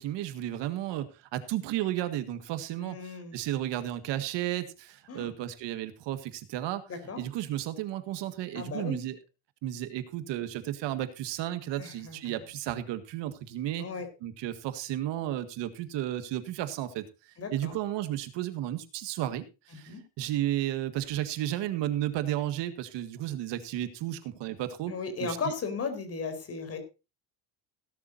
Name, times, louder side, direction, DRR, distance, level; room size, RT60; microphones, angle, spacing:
voice 1, 0.0-9.2 9.6-24.9 25.2-25.5, right 13 dB, 70° right, 11 dB, 1.9 m, -33 dB
voice 2, 2.8-3.4 5.1-5.3 6.9-7.2 8.5-9.0 11.8-12.2 13.8-14.1 17.4-17.7 19.7-20.0 24.9-26.8, left 5 dB, 30° left, 7 dB, 4.4 m, -36 dB
16.5 x 12.0 x 2.7 m, 0.29 s
cardioid pair, 170°, 45 cm